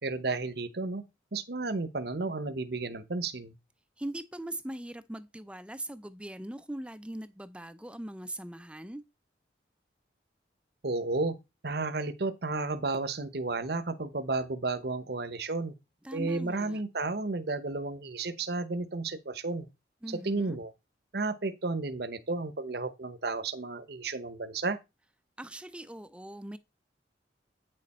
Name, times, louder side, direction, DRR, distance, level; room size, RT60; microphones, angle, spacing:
voice 1, 0.0-1.0 1.3-3.5 10.8-11.4 11.6-15.7 16.1-19.7 20.2-20.7 21.1-24.8, right 3 dB, 60° right, 0.9 m, -32 dB
voice 2, 4.0-9.0 16.0-16.8 20.0-20.6 25.4-26.6, right 1 dB, 5° right, 0.4 m, -40 dB
9.2 x 6.7 x 4.2 m
head